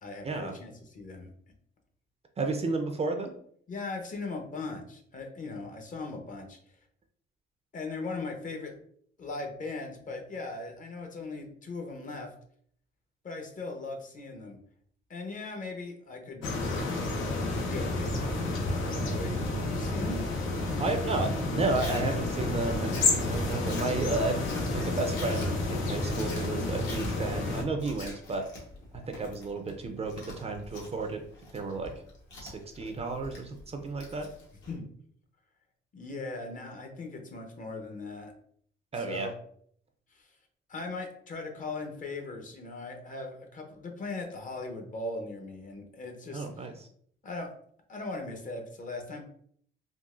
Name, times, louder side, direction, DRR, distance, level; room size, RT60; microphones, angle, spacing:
voice 1, 0.0-1.3 3.7-6.6 7.7-8.7 9.2-12.3 13.2-14.6 15.1-16.4 17.2-20.2 34.7-34.8 35.9-38.3 39.0-39.3 40.1-40.3 40.7-46.5 47.2-47.5 47.9-49.2, left 3 dB, 40° left, 3 dB, 0.7 m, -39 dB
voice 2, 2.4-3.4 20.8-24.5 24.7-28.5 29.1-31.2 31.5-31.9 32.4-34.3 38.9-39.3 46.3-46.7, right 3 dB, 30° right, 4 dB, 0.4 m, -32 dB
sound 1, 16.4-27.6, left 2 dB, 85° left, 0.7 m, -30 dB
Chewing mastication, 21.7-34.7, left 2 dB, 70° left, 1.1 m, -46 dB
3.8 x 2.4 x 2.4 m, 0.63 s
cardioid pair, 90°, 20 cm